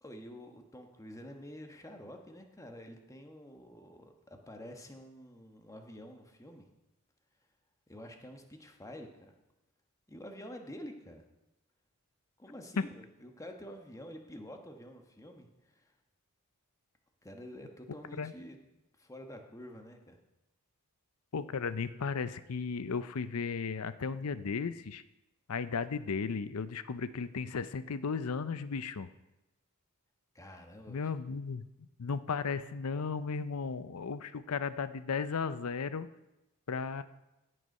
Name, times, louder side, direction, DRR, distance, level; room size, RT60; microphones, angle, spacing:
voice 1, 0.0-6.6 7.9-9.3 10.1-11.2 12.4-15.9 17.2-18.6 19.0-20.2 30.3-31.1, equal, 15° left, 4 dB, 1.3 m, -48 dB
voice 2, 21.3-25.0 25.5-29.1 30.9-31.6 32.0-36.1 36.7-37.0, left 5 dB, 80° left, 14 dB, 0.6 m, -35 dB
16.5 x 6.6 x 5.4 m, 0.98 s
head